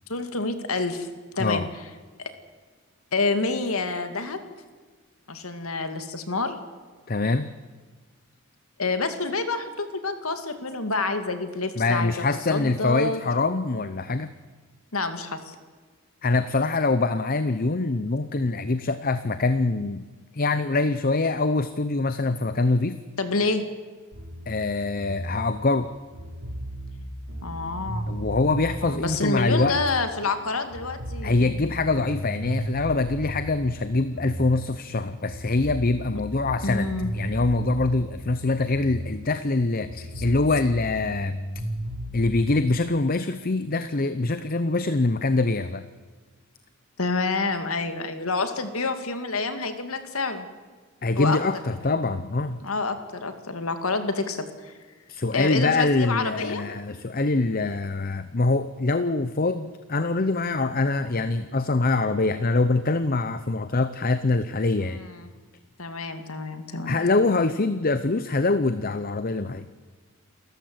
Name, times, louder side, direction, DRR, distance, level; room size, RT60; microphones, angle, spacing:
voice 1, 0.1-1.1 1.4-1.7 3.1-4.4 5.3-6.6 8.8-13.2 14.9-15.6 23.2-23.6 27.4-28.0 28.8-31.6 36.6-37.1 40.2-40.3 47.0-50.5 51.2-51.4 52.6-54.7 55.3-56.6 64.8-65.3 65.8-67.0, left 3 dB, 80° left, 8 dB, 2.3 m, -28 dB
voice 2, 7.1-7.5 11.8-14.3 16.2-20.1 20.3-23.0 24.5-25.9 28.1-29.8 31.2-41.4 42.1-45.8 51.0-52.6 55.1-65.0 66.9-69.7, left 3 dB, 40° left, 12 dB, 0.8 m, -24 dB
sound 1, 24.1-30.4 30.7-35.0 35.3-39.6 39.8-42.4, equal, 90° right, 5.4 m, -35 dB
28.0 x 14.0 x 7.9 m, 1.5 s
head